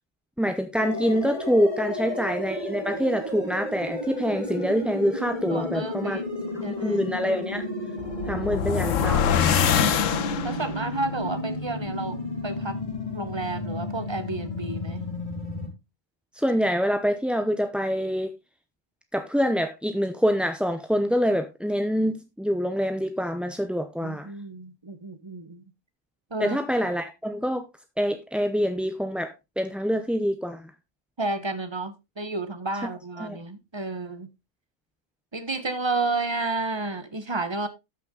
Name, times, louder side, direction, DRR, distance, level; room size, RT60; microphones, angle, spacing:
voice 1, 0.4-6.2 6.5-7.6 8.3-9.7 16.3-18.3 19.1-24.3 26.4-27.7 28.0-30.7 33.2-33.4, equal, ahead, 0.5 m, -26 dB
sound 1, 0.8-15.7, left 1 dB, 40° left, 3.7 m, -32 dB
voice 2, 5.5-7.0 8.9-9.0 10.4-12.8 13.1-15.1 24.0-25.6 26.3-26.6 31.2-34.3 35.3-37.7, right 3 dB, 20° right, 1.2 m, -31 dB
sound 2, 8.0-10.8, left 8 dB, 80° left, 1.2 m, -24 dB
13.0 x 5.9 x 3.8 m
omnidirectional pair, 1.3 m